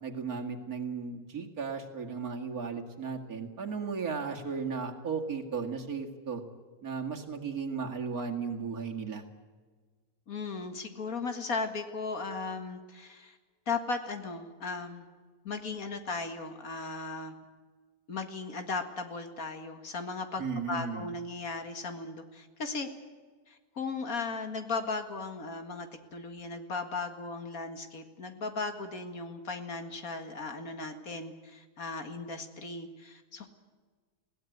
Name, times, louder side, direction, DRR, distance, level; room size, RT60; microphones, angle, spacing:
voice 1, 0.0-6.4 6.8-9.3 20.4-21.1, right 5 dB, 65° right, 2 dB, 2.6 m, -35 dB
voice 2, 10.3-13.4 13.7-15.1 15.4-17.4 18.1-22.9 23.5-33.5, left 4 dB, 60° left, 7 dB, 2.3 m, -37 dB
21.0 x 17.0 x 9.3 m, 1.5 s
omnidirectional pair, 1.7 m